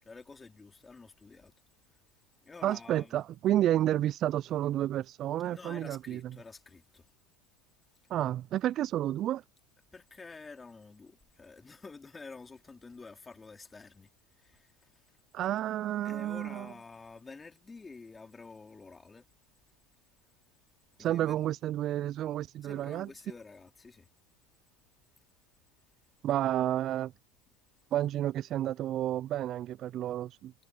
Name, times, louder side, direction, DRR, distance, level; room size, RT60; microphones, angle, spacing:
voice 1, 0.0-1.5 2.4-3.2 5.5-7.1 9.9-14.1 14.4-15.1 16.0-19.3 21.0-21.4 22.6-24.1, left 4 dB, 20° left, 2.7 m, -49 dB
voice 2, 2.6-6.4 8.1-9.4 15.3-16.7 21.0-23.1 26.2-27.1 27.9-30.5, right 12 dB, 45° right, 0.4 m, -30 dB
hypercardioid pair, 90°, 0 cm